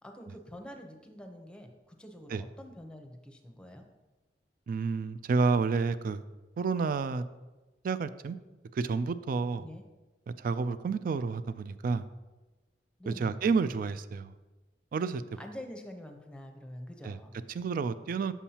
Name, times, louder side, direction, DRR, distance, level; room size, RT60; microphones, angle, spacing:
voice 1, 0.0-3.8 9.6-9.8 13.0-13.4 15.4-17.4, equal, 5° left, 4 dB, 0.7 m, -46 dB
voice 2, 4.7-6.2 6.6-7.2 7.8-8.4 8.7-9.7 10.4-12.0 13.1-14.3 14.9-15.2 17.0-17.2 17.5-18.3, right 4 dB, 50° right, 14 dB, 0.3 m, -30 dB
7.1 x 7.1 x 2.8 m, 1.1 s
head